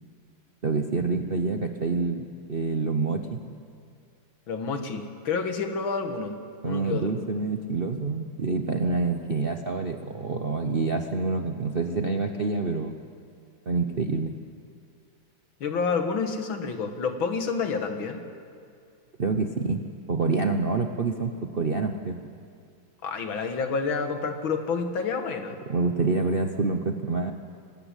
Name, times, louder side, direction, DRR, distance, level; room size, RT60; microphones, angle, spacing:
voice 1, 0.6-3.4 6.6-13.0 13.7-14.3 19.2-19.8 20.1-22.2 25.7-27.3, right 3 dB, 50° right, 5 dB, 0.7 m, -27 dB
voice 2, 4.5-6.4 6.6-7.1 15.6-18.2 23.0-25.6, left 5 dB, 75° left, 6 dB, 2.3 m, -29 dB
24.5 x 13.0 x 9.8 m, 2.4 s
omnidirectional pair, 2.2 m